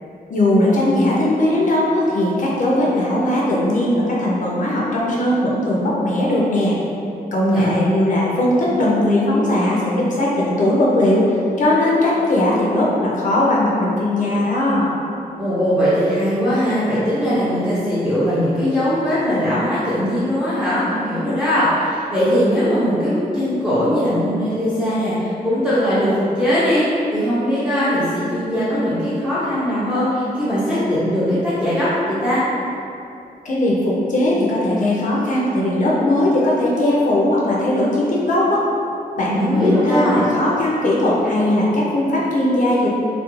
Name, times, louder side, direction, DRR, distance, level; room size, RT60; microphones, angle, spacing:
voice 1, 0.3-6.8 7.3-11.3 11.6-14.9 33.4-38.6 39.2-42.9, left 1 dB, 55° left, -5 dB, 0.4 m, -18 dB
voice 2, 7.4-7.8 15.4-32.4 39.3-40.2, equal, 5° right, -11 dB, 0.4 m, -20 dB
2.3 x 2.1 x 3.0 m, 2.7 s
wide cardioid pair, 160°, 16 cm